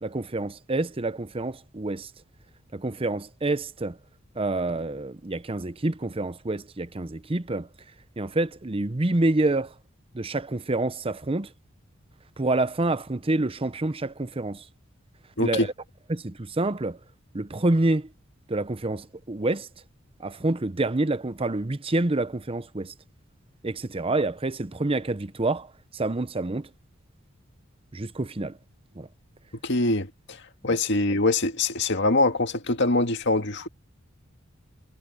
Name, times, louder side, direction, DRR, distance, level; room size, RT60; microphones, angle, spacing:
voice 1, 0.0-2.1 2.7-4.0 4.4-7.7 8.2-9.7 10.1-11.5 12.4-14.6 15.4-15.6 16.1-17.0 17.3-18.1 18.5-19.7 20.2-22.9 23.6-25.7 25.9-26.7 27.9-28.6 29.0-29.1 30.7-30.8, right 2 dB, 30° right, 0.8 m, -27 dB
voice 2, 15.4-15.7 29.6-30.1 30.6-33.7, left 2 dB, 60° left, 1.9 m, -23 dB
head